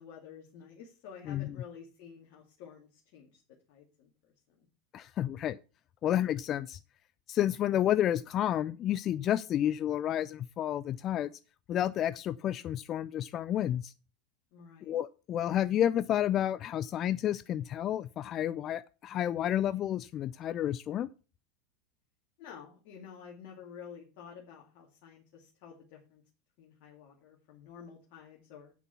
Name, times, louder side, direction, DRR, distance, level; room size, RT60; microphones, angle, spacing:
voice 1, 0.0-3.4 3.7-4.1 14.5-14.9 22.4-26.2 26.6-28.7, left 7 dB, 55° left, 2.4 m, -50 dB
voice 2, 1.3-1.6 4.9-5.6 6.0-6.8 7.3-11.4 11.7-13.9 14.8-21.1, left 11 dB, 40° left, 0.4 m, -30 dB
8.4 x 6.0 x 7.0 m
figure-of-eight pair, 85°, 0 cm